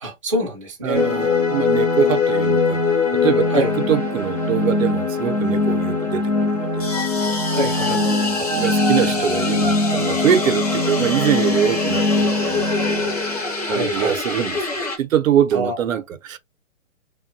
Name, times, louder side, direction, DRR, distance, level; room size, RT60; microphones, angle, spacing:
voice 1, 0.0-1.2 3.5-3.7 7.5-8.0 8.4-8.5 9.0-9.1 9.5-10.2 13.6-14.2 15.5-15.8, right 1 dB, 25° right, 0.4 m, -26 dB
voice 2, 0.8-2.8 3.1-6.9 7.9-13.1 13.7-14.6 15.0-16.4, right 9 dB, 80° right, 0.6 m, -23 dB
sound 1, 0.9-15.0, left 3 dB, 30° left, 0.5 m, -21 dB
2.8 x 2.2 x 2.5 m
hypercardioid pair, 170°, 39 cm